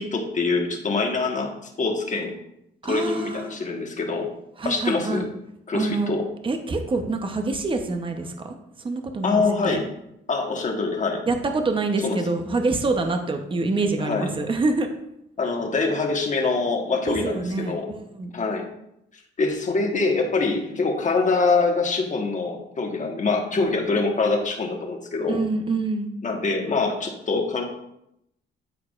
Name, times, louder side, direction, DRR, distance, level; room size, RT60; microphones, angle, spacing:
voice 1, 0.0-2.3 2.8-4.3 4.6-5.3 5.7-6.2 9.2-9.8 10.3-11.2 12.0-12.2 14.0-14.3 15.4-17.9 18.3-18.6 19.4-25.4 26.2-27.6, left 3 dB, 40° left, 2 dB, 1.4 m, -24 dB
voice 2, 2.8-3.6 4.6-5.3 5.7-6.1 6.4-9.8 11.3-14.9 17.1-18.3 23.9-24.0 25.3-26.1, right 3 dB, 25° right, 5 dB, 0.8 m, -26 dB
12.5 x 4.7 x 2.5 m, 0.80 s
cardioid pair, 90°, 20 cm